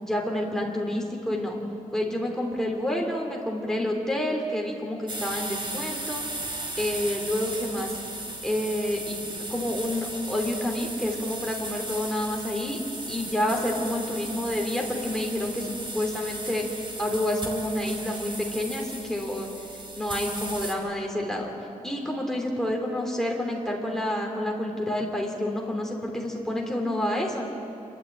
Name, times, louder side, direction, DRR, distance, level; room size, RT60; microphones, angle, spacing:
voice 1, 0.0-1.6 1.9-6.2 6.8-7.9 8.4-12.8 13.1-19.5 19.9-21.5 21.8-27.5, left 1 dB, 5° left, 0 dB, 3.1 m, -29 dB
sound 1, 5.1-20.8, right 2 dB, 35° right, 2.8 m, -36 dB
27.0 x 12.0 x 8.7 m, 2.7 s
wide cardioid pair, 130°, 14 cm